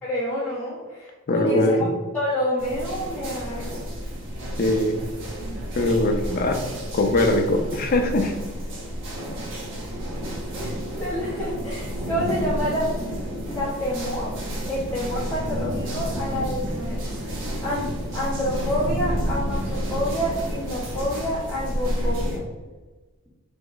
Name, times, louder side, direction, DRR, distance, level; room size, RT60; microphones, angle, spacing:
voice 1, 0.0-3.8 10.6-12.9 13.4-14.3 14.7-17.1 17.6-22.4, left 1 dB, 10° left, -11 dB, 0.8 m, -28 dB
voice 2, 1.3-1.9 4.6-5.0 5.7-6.6 6.9-8.3, left 1 dB, 40° left, 5 dB, 0.4 m, -21 dB
sound 1, 2.6-22.4, equal, 55° right, 0.9 m, -30 dB
3.5 x 3.0 x 3.9 m, 1.3 s
head